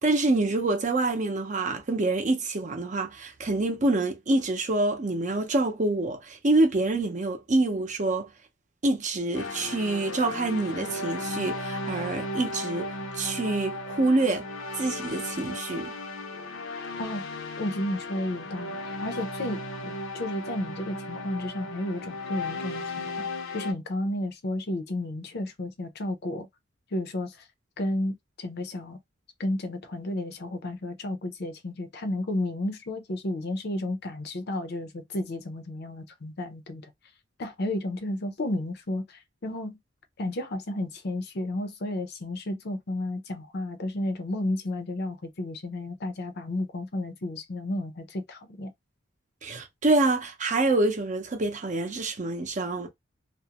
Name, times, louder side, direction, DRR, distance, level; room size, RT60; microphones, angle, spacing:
voice 1, 0.0-8.3 8.8-12.9 13.1-14.4 14.8-15.9 49.4-52.9, right 2 dB, 40° right, 0.6 m, -26 dB
sound 1, 9.3-23.7, left 2 dB, 90° left, 0.7 m, -35 dB
voice 2, 17.6-23.3 23.5-26.5 26.9-27.4 27.8-29.0 29.4-36.9 37.4-39.8 40.2-48.7, left 1 dB, 55° left, 0.6 m, -32 dB
2.4 x 2.1 x 2.8 m
head